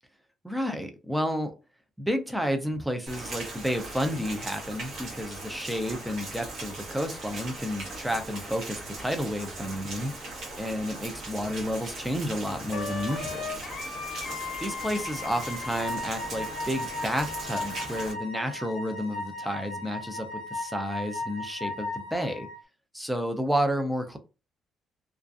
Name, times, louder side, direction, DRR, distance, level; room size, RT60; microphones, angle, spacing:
voice 1, 0.4-1.5 2.0-10.1 10.6-13.5 14.6-22.5 22.9-24.2, equal, 5° right, 0.4 m, -31 dB
Rain, 3.1-18.1, right 2 dB, 60° right, 1.1 m, -39 dB
Wind instrument woodwind instrument, 12.7-22.6, left 3 dB, 50° left, 0.6 m, -36 dB
2.4 x 2.3 x 2.4 m
cardioid pair, 140°, 0 cm